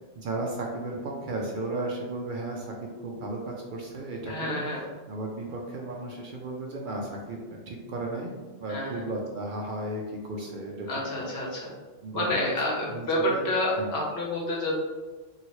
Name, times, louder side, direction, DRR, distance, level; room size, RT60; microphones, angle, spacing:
voice 1, 0.2-4.6 5.1-8.3 8.6-11.3 12.0-13.4 13.8-13.9, right 2 dB, 60° right, 0 dB, 0.6 m, -35 dB
voice 2, 4.3-4.8 8.7-9.1 10.9-11.7 12.1-14.8, left 1 dB, 75° left, -4 dB, 1.1 m, -29 dB
2.8 x 2.7 x 3.0 m, 1.3 s
omnidirectional pair, 1.1 m